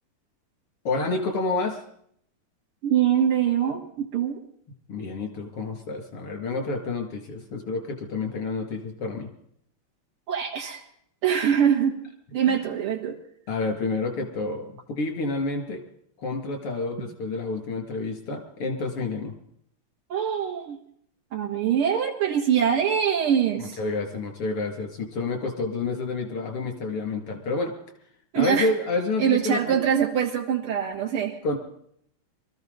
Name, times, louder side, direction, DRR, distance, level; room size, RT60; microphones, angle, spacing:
voice 1, 0.9-1.8 4.9-9.3 12.5-12.6 13.5-15.8 16.2-19.3 23.6-27.7 28.4-29.8 31.4-31.6, left 3 dB, 85° left, 3 dB, 3.4 m, -29 dB
voice 2, 2.8-4.4 10.3-10.8 11.2-12.0 12.3-13.2 20.1-20.8 21.3-23.8 28.3-28.7 29.2-31.4, right 8 dB, 75° right, 0 dB, 2.6 m, -23 dB
23.0 x 13.5 x 4.0 m, 0.67 s
omnidirectional pair, 2.4 m